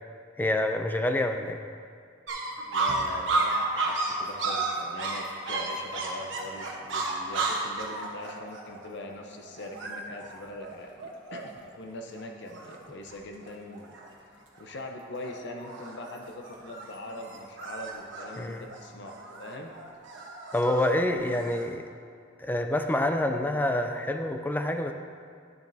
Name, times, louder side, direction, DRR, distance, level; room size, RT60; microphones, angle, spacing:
voice 1, 0.4-1.6 18.4-18.7 20.5-21.9 22.4-24.9, left 1 dB, 10° left, 6 dB, 0.3 m, -27 dB
sound 1, 2.3-11.7 12.2-12.3 12.5-13.1 13.4-14.1 14.5-14.9 15.2-21.7, right 3 dB, 65° right, 1.0 m, -33 dB
voice 2, 2.7-13.9 14.3-19.1 19.4-19.7, left 1 dB, 60° left, 2 dB, 0.7 m, -42 dB
10.5 x 7.3 x 2.7 m, 2.2 s
head